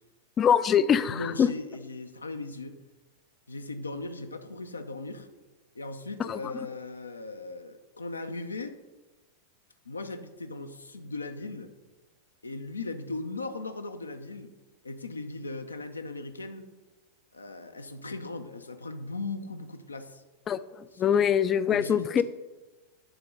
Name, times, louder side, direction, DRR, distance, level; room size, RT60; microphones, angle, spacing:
voice 1, 0.4-1.5 6.3-6.4 20.5-20.6 21.0-22.2, left 8 dB, 25° left, 15 dB, 0.4 m, -23 dB
voice 2, 1.1-2.8 3.5-5.3 5.7-8.7 9.9-11.7 12.4-14.5 14.8-16.7 17.3-20.2 20.9-21.3 21.7-22.2, left 3 dB, 80° left, 9 dB, 0.6 m, -38 dB
9.0 x 3.8 x 6.6 m, 1.2 s
figure-of-eight pair, 90°, 0 cm